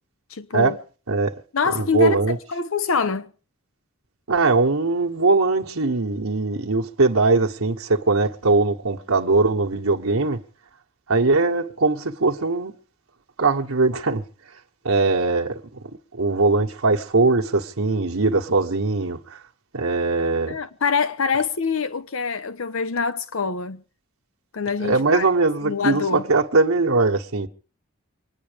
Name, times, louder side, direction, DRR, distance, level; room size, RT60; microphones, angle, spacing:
voice 1, 0.3-0.8 1.5-3.3 20.5-23.8 24.5-25.3 25.6-26.2, left 5 dB, 75° left, 0.8 m, -25 dB
voice 2, 1.7-2.4 4.3-10.4 11.1-12.7 13.4-14.2 14.8-19.4 19.7-20.6 24.8-27.5, right 3 dB, 90° right, 1.3 m, -21 dB
25.0 x 10.0 x 5.2 m
head